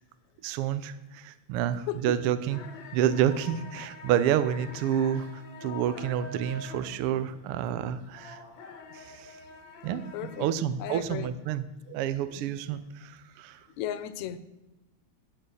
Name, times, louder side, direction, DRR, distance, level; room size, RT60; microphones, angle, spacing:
voice 1, 0.4-2.6 2.9-8.4 8.9-9.4 9.8-13.7, right 10 dB, 80° right, 13 dB, 1.3 m, -29 dB
sound 1, 2.5-10.5, left 4 dB, 60° left, 1.2 m, -46 dB
voice 2, 10.1-10.5 10.8-11.3 12.3-12.6 13.8-14.4, left 11 dB, 80° left, 13 dB, 1.9 m, -35 dB
11.0 x 6.6 x 6.4 m, 1.0 s
omnidirectional pair, 3.3 m